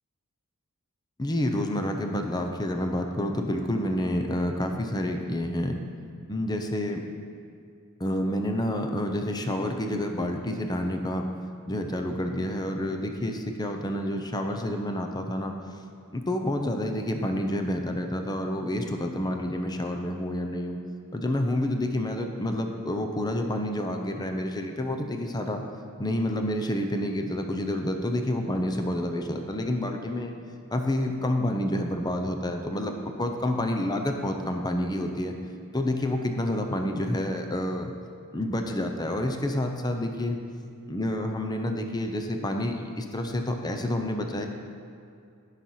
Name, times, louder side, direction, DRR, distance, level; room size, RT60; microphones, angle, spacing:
voice 1, 1.2-5.8 6.3-7.0 8.0-11.2 11.7-15.5 16.1-20.8 21.1-25.6 26.0-30.3 30.7-35.4 35.7-37.9 38.3-40.4 40.9-44.5, left 1 dB, 20° left, 4 dB, 0.7 m, -29 dB
12.0 x 5.8 x 5.6 m, 2.4 s
head